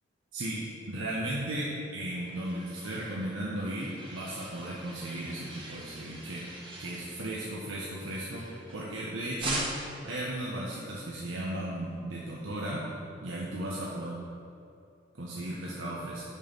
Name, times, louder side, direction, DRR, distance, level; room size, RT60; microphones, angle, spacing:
voice 1, 0.9-6.5 6.8-8.5 8.7-9.7 10.0-12.9 13.2-14.2 15.2-16.2, right 1 dB, 80° right, -5 dB, 1.0 m, -35 dB
sound 1, 1.7-9.0 9.4-10.1, right 2 dB, 25° right, 1.4 m, -42 dB
6.5 x 5.4 x 5.2 m, 2.6 s
head